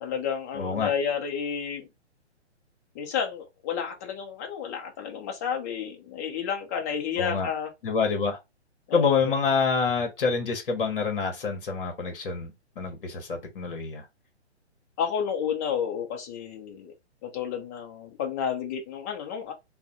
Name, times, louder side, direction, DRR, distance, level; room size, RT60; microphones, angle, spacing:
voice 1, 0.0-1.9 2.9-7.7 8.9-9.3 15.0-16.9 17.2-19.5, left 7 dB, 15° left, 0.5 m, -31 dB
voice 2, 0.5-0.9 7.2-7.5 7.8-8.4 8.9-14.1, left 5 dB, 50° left, 1.0 m, -27 dB
3.3 x 2.1 x 4.0 m
figure-of-eight pair, 130°, 34 cm